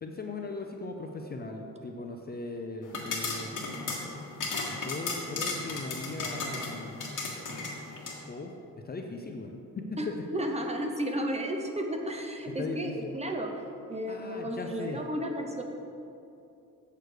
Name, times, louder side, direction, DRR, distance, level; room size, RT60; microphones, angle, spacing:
voice 1, 0.0-3.6 4.7-7.2 8.3-10.2 12.5-13.1 14.1-15.0, left 3 dB, 30° left, 3 dB, 0.5 m, -39 dB
sound 1, 2.8-8.2, left 3 dB, 65° left, 1.7 m, -35 dB
voice 2, 10.3-13.5 13.9-15.6, equal, 20° right, 2 dB, 0.7 m, -33 dB
7.8 x 6.7 x 4.9 m, 2.7 s
wide cardioid pair, 155°, 34 cm